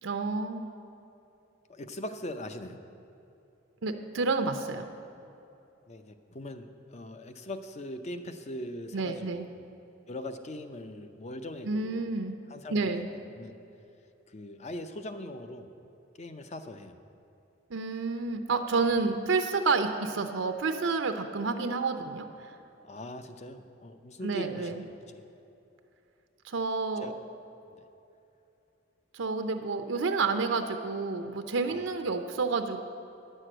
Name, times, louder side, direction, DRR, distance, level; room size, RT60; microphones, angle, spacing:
voice 1, 0.0-0.7 3.8-4.8 8.9-9.5 11.6-12.3 12.7-13.1 17.7-22.5 24.2-24.7 26.4-27.1 29.1-32.8, right 4 dB, 90° right, 7 dB, 0.6 m, -29 dB
voice 2, 1.7-2.8 5.9-9.7 10.1-12.1 12.5-13.6 14.3-15.7 16.1-16.9 22.8-25.2 27.0-27.2 27.7-27.8 31.7-31.9, left 1 dB, 35° left, 9 dB, 0.6 m, -41 dB
9.9 x 6.4 x 7.6 m, 2.8 s
head